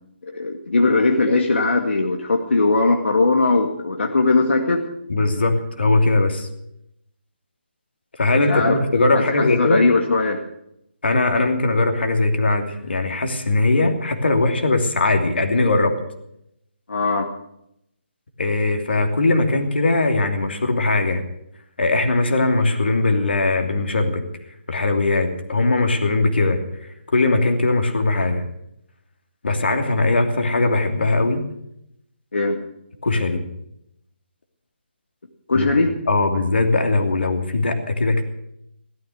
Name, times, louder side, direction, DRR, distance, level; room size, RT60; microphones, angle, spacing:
voice 1, 0.3-4.8 8.5-8.8 9.1-10.4 16.9-17.3 32.3-32.6 35.5-35.9, left 3 dB, 85° left, 3 dB, 2.1 m, -19 dB
voice 2, 5.1-6.5 8.2-9.8 11.0-15.9 18.4-21.2 21.8-24.2 24.7-26.6 27.1-28.4 29.4-31.4 33.0-33.5 35.5-35.7 36.1-38.2, left 2 dB, 65° left, 5 dB, 2.9 m, -20 dB
16.0 x 13.0 x 6.4 m, 0.78 s
hypercardioid pair, 175°, 6 cm